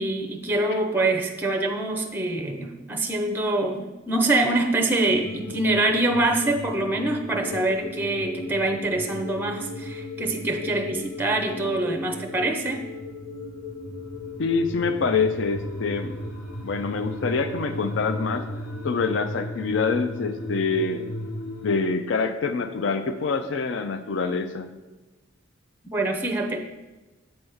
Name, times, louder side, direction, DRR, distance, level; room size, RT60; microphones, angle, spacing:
voice 1, 0.0-12.9 25.9-26.6, right 2 dB, 10° right, 4 dB, 0.5 m, -25 dB
sound 1, 5.2-21.8, left 1 dB, 80° left, 1.0 m, -36 dB
voice 2, 14.4-16.2 16.6-18.4 18.8-21.0 21.6-24.7, left 4 dB, 65° left, 9 dB, 0.4 m, -25 dB
7.8 x 3.4 x 5.5 m, 1.1 s
head